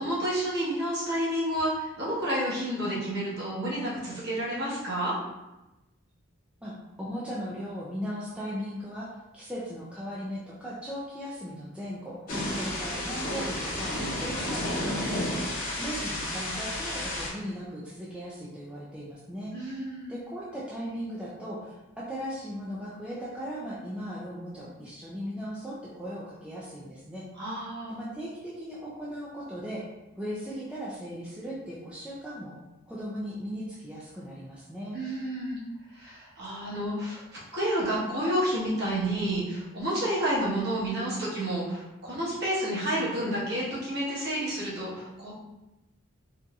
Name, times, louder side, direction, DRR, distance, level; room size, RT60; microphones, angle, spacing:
voice 1, 0.0-5.2 19.5-20.1 27.4-28.0 34.9-35.6 35.9-45.3, right 1 dB, 50° right, -7 dB, 1.1 m, -30 dB
voice 2, 6.6-9.1 9.3-12.2 12.5-19.7 20.1-27.3 27.9-29.8 30.2-32.5 32.9-35.0, equal, 5° right, -7 dB, 0.3 m, -38 dB
Thunder / Rain, 12.3-17.3, left 1 dB, 40° left, 0.8 m, -31 dB
3.9 x 2.6 x 2.3 m, 1.0 s
head